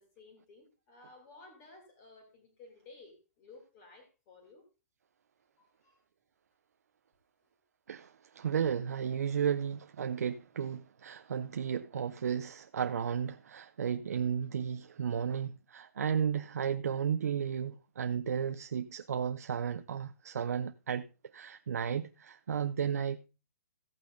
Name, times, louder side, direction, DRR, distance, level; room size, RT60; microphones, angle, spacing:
voice 1, 0.0-4.6 5.6-6.0, left 3 dB, 20° left, 2.8 m, -56 dB
voice 2, 7.9-21.0 21.3-23.3, right 7 dB, 75° right, 0.8 m, -33 dB
15.0 x 8.6 x 3.9 m
hypercardioid pair, 175°, 9 cm